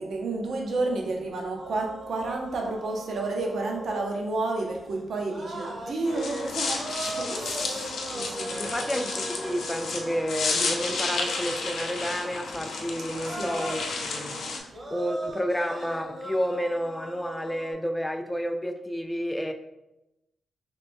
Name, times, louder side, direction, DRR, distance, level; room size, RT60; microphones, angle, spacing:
voice 1, 0.0-8.7 13.3-13.6, right 2 dB, 65° right, 1 dB, 0.7 m, -31 dB
sound 1, 1.6-4.2 4.6-4.8 5.2-12.3 12.8-12.9 13.1-17.7, right 1 dB, 40° right, 0.9 m, -40 dB
sound 2, 6.1-14.6, left 4 dB, 80° left, 0.5 m, -32 dB
voice 2, 8.6-19.5, equal, 10° left, 5 dB, 0.3 m, -30 dB
3.2 x 3.0 x 3.4 m, 0.93 s
cardioid pair, 110°, 0 cm